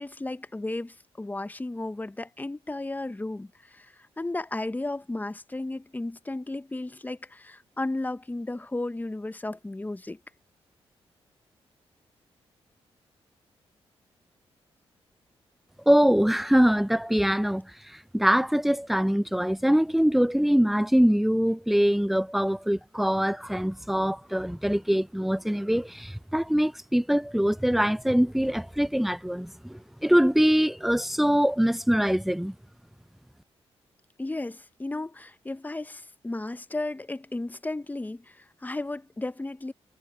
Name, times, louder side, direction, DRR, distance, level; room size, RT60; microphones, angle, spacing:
voice 1, 0.0-10.2 34.2-39.7, left 2 dB, 15° left, 0.8 m, -34 dB
voice 2, 15.9-17.6 18.1-32.5, equal, ahead, 0.4 m, -23 dB
cardioid pair, 60°, 11 cm